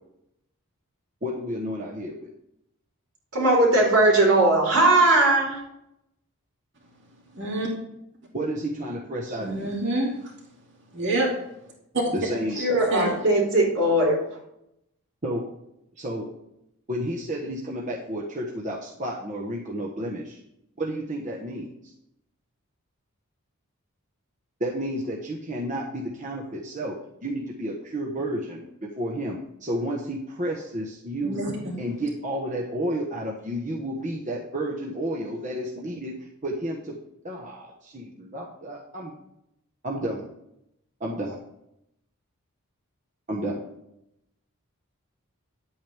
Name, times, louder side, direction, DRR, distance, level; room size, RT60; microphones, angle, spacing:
voice 1, 1.2-2.3 8.3-9.7 12.1-12.9 15.2-15.4 16.0-16.3 16.9-20.4 20.8-21.7 24.6-27.0 27.2-31.4 31.8-36.1 36.4-36.9 37.2-39.1 39.8-40.3 41.0-41.4 43.3-43.6, right 1 dB, 35° right, -1 dB, 1.2 m, -31 dB
voice 2, 3.3-5.6 12.6-14.2, right 2 dB, 80° right, -2 dB, 4.1 m, -19 dB
voice 3, 7.3-7.7 9.4-10.1 10.9-11.3 11.9-12.0 12.9-13.2 31.2-31.7, right 2 dB, 55° right, -2 dB, 2.7 m, -26 dB
11.0 x 8.6 x 3.5 m, 0.79 s
head